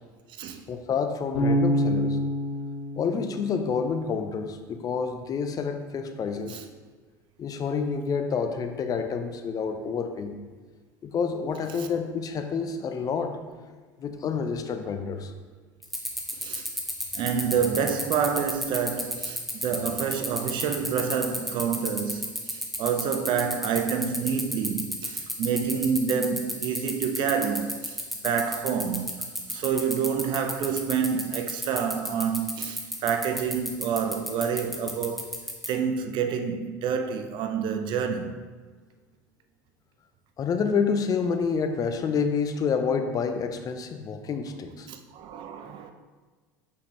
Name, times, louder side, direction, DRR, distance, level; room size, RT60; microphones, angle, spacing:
voice 1, 0.7-2.2 3.0-6.6 7.4-10.3 11.0-13.4 14.0-15.3 40.4-44.9, left 5 dB, 35° left, 0.7 m, -28 dB
Bass guitar, 1.3-4.4, equal, 65° left, 1.5 m, -27 dB
sound 1, 15.8-35.7, equal, ahead, 1.2 m, -31 dB
voice 2, 16.4-16.7 17.1-38.4 44.9-45.9, right 7 dB, 50° right, 0.7 m, -28 dB
6.4 x 5.7 x 3.2 m
hypercardioid pair, 75°, 10 cm